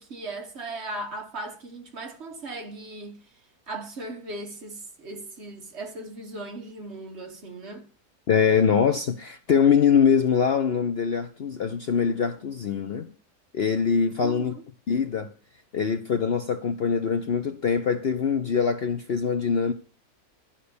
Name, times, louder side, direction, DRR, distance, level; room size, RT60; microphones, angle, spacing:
voice 1, 0.0-3.2 3.7-7.8 14.2-14.6, right 2 dB, 50° right, 1.5 m, -37 dB
voice 2, 8.3-13.1 13.5-14.5 14.9-15.3 15.7-19.7, left 6 dB, 55° left, 0.7 m, -23 dB
11.5 x 5.7 x 6.9 m
omnidirectional pair, 1.6 m